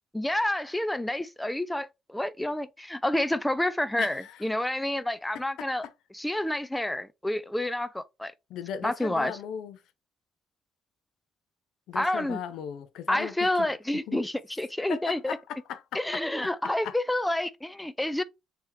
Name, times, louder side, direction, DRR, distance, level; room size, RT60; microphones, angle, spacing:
voice 1, 0.1-5.9 6.1-8.3 8.8-9.3 11.9-12.4 13.1-15.4 15.9-18.2, left 1 dB, 5° left, 0.3 m, -29 dB
voice 2, 4.0-4.4 5.6-5.9 8.5-9.8 11.9-13.5 14.1-14.2 14.9-16.2 16.6-17.0, left 8 dB, 75° left, 0.5 m, -37 dB
3.5 x 2.9 x 3.1 m
cardioid pair, 90°, 0 cm